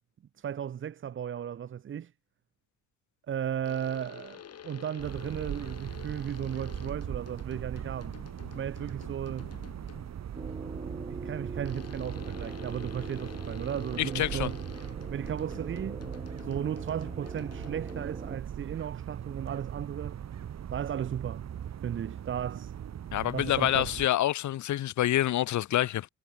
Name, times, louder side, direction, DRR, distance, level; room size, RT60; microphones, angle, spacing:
voice 1, 0.4-2.1 3.3-4.4 4.6-8.2 8.5-9.6 11.1-14.6 15.1-16.1 16.4-20.2 20.7-21.4 21.8-22.7 23.3-23.9, right 9 dB, 40° right, 0.7 m, -35 dB
sound 1, 3.6-10.3 11.6-18.3, left 8 dB, 55° left, 3.8 m, -49 dB
sound 2, 5.0-24.1, right 9 dB, 60° right, 4.2 m, -40 dB
sound 3, 10.3-18.4, right 3 dB, 20° right, 4.9 m, -42 dB
voice 2, 14.0-14.5 23.1-26.1, left 13 dB, 70° left, 1.4 m, -27 dB
cardioid pair, 90°, 30 cm